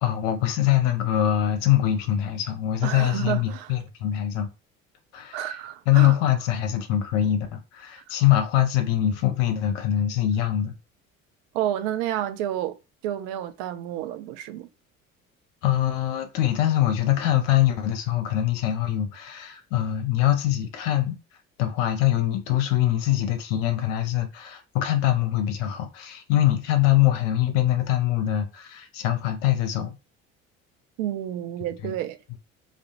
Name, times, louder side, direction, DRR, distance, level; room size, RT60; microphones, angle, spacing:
voice 1, 0.0-4.5 5.1-5.6 5.9-10.7 15.6-21.2 21.6-29.9 31.8-31.9, left 12 dB, 65° left, 0.6 m, -23 dB
voice 2, 2.8-3.7 5.3-6.2 11.5-12.8 13.0-14.7 31.0-32.2, right 11 dB, 55° right, 0.5 m, -30 dB
2.3 x 2.1 x 2.8 m
figure-of-eight pair, 55°, 40 cm